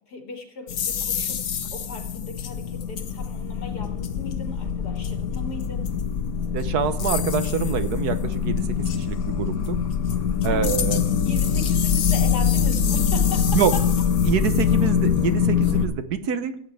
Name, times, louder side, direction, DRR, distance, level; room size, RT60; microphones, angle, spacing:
voice 1, 0.1-5.9 10.4-10.8 11.3-13.9, left 5 dB, 85° left, 3 dB, 2.7 m, -37 dB
sound 1, 0.7-15.9, left 7 dB, 65° left, 1.3 m, -24 dB
voice 2, 6.5-8.6 8.9-9.8 10.4-11.0 13.5-13.7 14.3-16.5, right 7 dB, 75° right, 10 dB, 1.5 m, -25 dB
15.5 x 8.6 x 3.4 m, 0.68 s
omnidirectional pair, 1.7 m